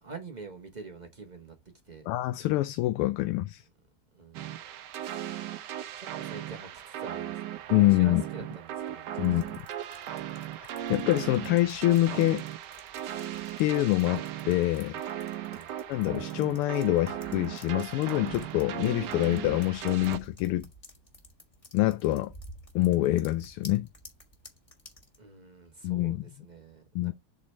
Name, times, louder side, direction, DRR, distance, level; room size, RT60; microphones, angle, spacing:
voice 1, 0.0-1.6 1.8-2.1 4.1-4.6 6.0-9.5 15.4-15.7 25.2-27.1, right 3 dB, 50° right, 0.5 m, -46 dB
voice 2, 2.1-3.6 7.7-8.2 9.2-9.4 10.9-12.4 13.6-15.0 15.9-20.7 21.7-22.3 22.7-23.9 25.8-26.2 26.9-27.1, left 16 dB, 85° left, 1.5 m, -25 dB
sound 1, 4.3-20.2, right 11 dB, 70° right, 1.1 m, -37 dB
sound 2, 9.2-25.2, equal, 20° left, 1.1 m, -53 dB
7.5 x 3.3 x 4.2 m
omnidirectional pair, 2.4 m